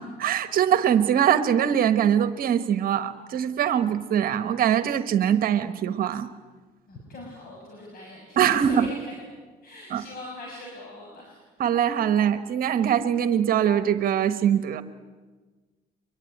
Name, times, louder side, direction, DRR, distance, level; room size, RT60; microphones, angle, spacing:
voice 1, 0.0-6.3 8.4-8.9 9.9-10.0 11.6-14.8, right 9 dB, 60° right, 12 dB, 1.2 m, -22 dB
voice 2, 6.9-9.1 9.6-11.4, left 2 dB, 60° left, -1 dB, 6.6 m, -40 dB
24.5 x 22.5 x 9.4 m, 1.3 s
cardioid pair, 110°, 17 cm